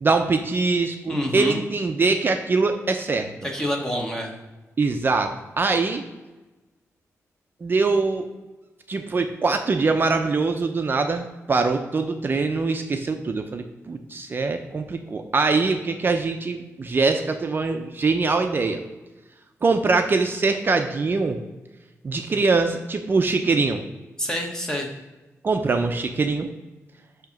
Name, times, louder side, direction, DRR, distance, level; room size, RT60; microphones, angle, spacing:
voice 1, 0.0-3.3 4.8-6.0 7.6-8.3 8.9-18.8 19.6-21.4 22.0-23.8 25.4-26.5, right 4 dB, 40° right, 5 dB, 0.5 m, -23 dB
voice 2, 1.1-1.6 3.4-4.3 24.2-24.9, equal, 10° left, 1 dB, 1.3 m, -27 dB
7.0 x 2.9 x 5.9 m, 1.1 s
cardioid pair, 90°, 5 cm